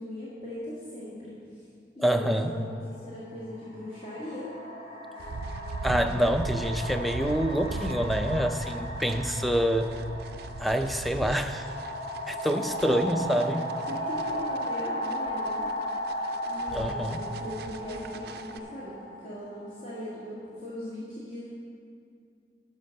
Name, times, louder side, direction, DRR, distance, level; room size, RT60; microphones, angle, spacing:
voice 1, 0.0-1.6 2.0-2.7 3.0-4.5 5.1-5.4 12.5-12.7 13.2-13.6 13.8-16.0 16.4-21.5, left 1 dB, 50° left, -9 dB, 2.0 m, -39 dB
voice 2, 2.0-2.5 5.8-9.9 10.6-11.7 12.3-13.7 16.8-17.2, equal, ahead, 7 dB, 0.4 m, -26 dB
sound 1, 2.6-2.7 3.6-20.2, equal, 35° left, 2.1 m, -36 dB
sound 2, 5.2-18.6, right 3 dB, 60° right, 0.4 m, -39 dB
12.0 x 5.3 x 6.4 m, 2.4 s
head